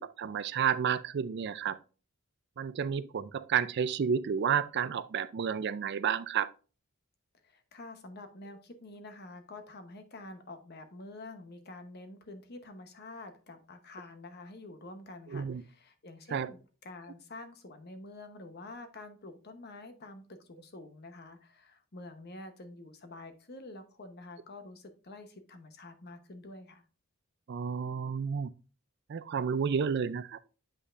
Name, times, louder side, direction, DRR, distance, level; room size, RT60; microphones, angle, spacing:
voice 1, 0.0-1.8 2.6-6.5 15.3-15.6 16.3-16.5 27.5-28.5 29.1-30.4, right 7 dB, 50° right, 0.4 m, -31 dB
voice 2, 7.4-16.6 16.8-26.8, left 2 dB, 50° left, 0.9 m, -48 dB
8.1 x 5.5 x 2.5 m
head